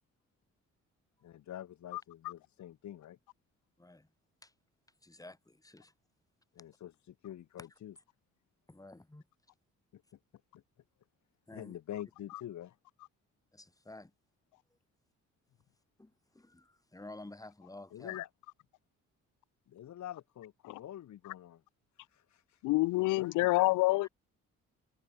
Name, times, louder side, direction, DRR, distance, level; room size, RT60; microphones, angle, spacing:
voice 1, 1.2-3.2 6.5-7.9 9.9-10.0 11.5-12.8 17.9-18.3 19.7-21.6 22.1-22.6 23.0-24.0, left 11 dB, 70° left, 2.4 m, -46 dB
voice 2, 3.8-4.1 4.4-4.5 5.0-5.9 8.7-9.2 11.5-11.8 13.5-14.1 16.0-18.2, left 2 dB, 10° left, 3.6 m, -51 dB
voice 3, 22.6-24.1, left 20 dB, 90° left, 0.5 m, -27 dB
cardioid pair, 90°, 30 cm